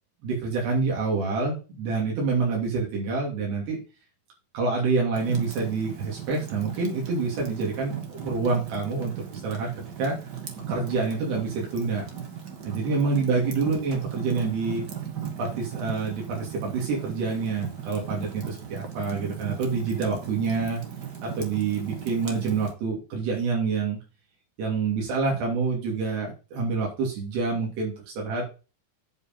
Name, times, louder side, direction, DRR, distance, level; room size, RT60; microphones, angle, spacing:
voice 1, 0.2-3.8 4.5-9.7 10.0-10.2 10.7-12.1 12.6-14.8 15.4-20.8 21.2-24.0 24.6-28.5, right 4 dB, 90° right, -2 dB, 5.0 m, -27 dB
Fire, 5.1-22.7, right 8 dB, 65° right, 1.0 m, -37 dB
9.5 x 5.4 x 5.3 m, 0.32 s
omnidirectional pair, 4.6 m